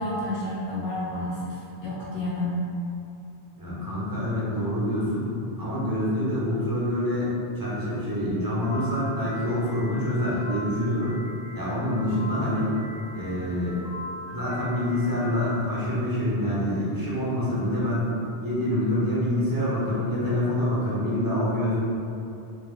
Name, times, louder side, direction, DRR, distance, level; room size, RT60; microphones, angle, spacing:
voice 1, 0.0-2.6, left 1 dB, 60° left, -9 dB, 1.3 m, -30 dB
voice 2, 3.6-5.3 5.6-11.2 11.5-12.8 13.1-13.8 14.3-18.1 18.4-21.8, left 1 dB, 20° right, -8 dB, 0.8 m, -26 dB
Piano, 8.6-15.6, left 1 dB, 85° right, 1.4 m, -41 dB
3.5 x 2.8 x 3.1 m, 2.7 s
omnidirectional pair, 1.1 m